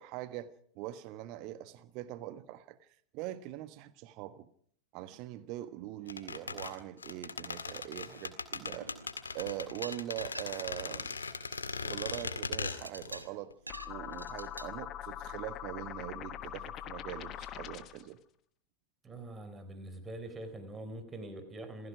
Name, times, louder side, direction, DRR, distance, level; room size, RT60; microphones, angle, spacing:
voice 1, 0.0-2.9 3.1-4.5 4.9-8.9 9.3-11.1 11.8-13.5 13.8-18.2, right 14 dB, 40° right, 1.3 m, -42 dB
sound 1, 6.1-13.2 13.5-13.6, left 4 dB, 75° left, 1.9 m, -39 dB
sound 2, 8.0-8.5 8.8-10.9 11.1-14.7, right 1 dB, 85° right, 1.4 m, -47 dB
sound 3, 13.7-18.1, left 11 dB, 35° left, 1.3 m, -42 dB
voice 2, 19.0-21.9, right 1 dB, 20° right, 4.0 m, -44 dB
27.5 x 17.0 x 6.0 m
figure-of-eight pair, 90°, 0 cm